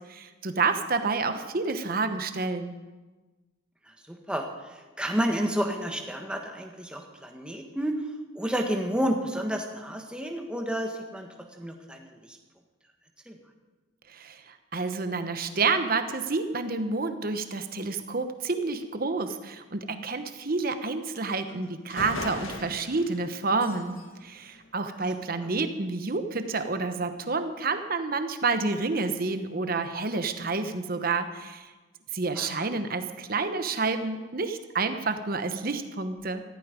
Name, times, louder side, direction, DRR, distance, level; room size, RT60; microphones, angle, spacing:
voice 1, 0.1-2.7 14.1-31.7 32.1-36.4, right 3 dB, 45° right, 9 dB, 1.0 m, -29 dB
voice 2, 3.9-7.9 8.3-11.3 11.6-12.4 13.3-13.4 25.4-25.5 32.4-32.6, equal, 5° right, 2 dB, 1.4 m, -31 dB
sound 1, 21.5-21.6 21.9-25.4, left 2 dB, 85° left, 1.8 m, -40 dB
15.0 x 14.0 x 5.2 m, 1.2 s
head